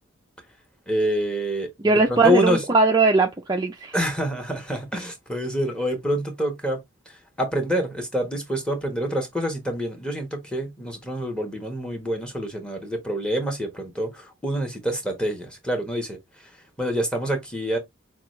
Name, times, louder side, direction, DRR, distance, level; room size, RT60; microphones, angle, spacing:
voice 1, 0.9-2.6 3.9-6.8 7.4-16.5 16.8-17.8, equal, 5° left, 1.2 m, -26 dB
voice 2, 1.8-3.9, right 3 dB, 20° right, 0.4 m, -19 dB
5.9 x 2.4 x 3.1 m
head